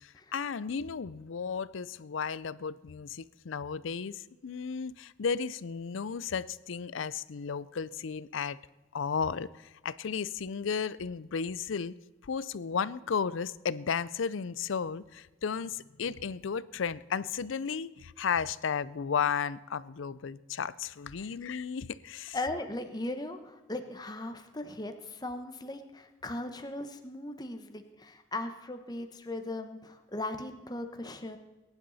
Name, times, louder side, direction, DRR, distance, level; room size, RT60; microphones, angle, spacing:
voice 1, 0.0-8.6 8.9-11.9 12.2-22.4, left 6 dB, 80° left, 19 dB, 0.5 m, -34 dB
voice 2, 22.3-31.4, left 2 dB, 20° left, 7 dB, 1.1 m, -38 dB
20.5 x 10.5 x 4.1 m, 1.2 s
head